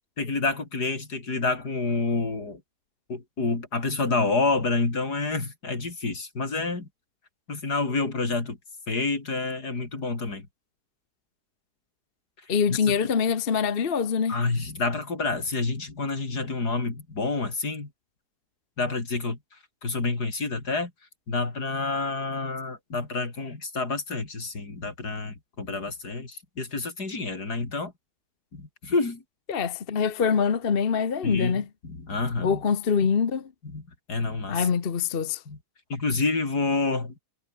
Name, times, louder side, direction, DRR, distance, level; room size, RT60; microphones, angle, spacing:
voice 1, 0.2-2.6 3.1-6.9 7.5-8.6 8.9-10.5 14.3-17.9 18.8-19.4 19.8-20.9 21.3-27.9 28.5-29.2 31.2-32.6 33.6-33.8 34.1-34.7 35.5-35.6 35.9-37.2, left 3 dB, 75° left, 4.6 m, -28 dB
voice 2, 12.5-14.4 29.5-31.7 32.4-33.5 34.5-35.4, left 6 dB, 40° left, 1.2 m, -24 dB
omnidirectional pair, 1.7 m